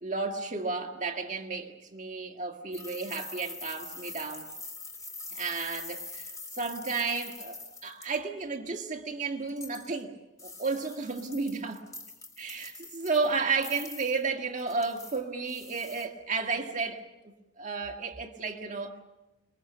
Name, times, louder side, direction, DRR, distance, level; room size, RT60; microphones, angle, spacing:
voice 1, 0.0-4.5 5.3-10.2 10.4-11.9 12.4-17.1 17.6-19.0, right 4 dB, 40° right, 1.8 m, -33 dB
sound 1, 2.7-8.2 9.5-10.0 10.4-13.4 13.6-14.2 14.6-16.1, left 3 dB, 15° left, 3.1 m, -44 dB
28.0 x 22.0 x 6.9 m
head